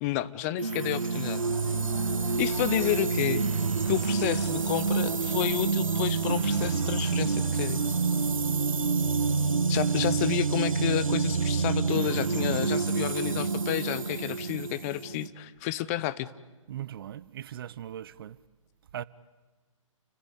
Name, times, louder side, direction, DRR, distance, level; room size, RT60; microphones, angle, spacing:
voice 1, 0.0-1.4 2.4-3.4 3.8-7.8 9.7-16.3, left 14 dB, 25° left, 0.8 m, -30 dB
sound 1, 0.6-15.3, right 4 dB, 80° right, 1.1 m, -27 dB
sound 2, 1.3-11.8, left 1 dB, 85° left, 3.7 m, -46 dB
voice 2, 16.7-18.4 18.9-19.0, right 11 dB, 45° right, 0.7 m, -39 dB
30.0 x 15.5 x 9.9 m
figure-of-eight pair, 135°, 17 cm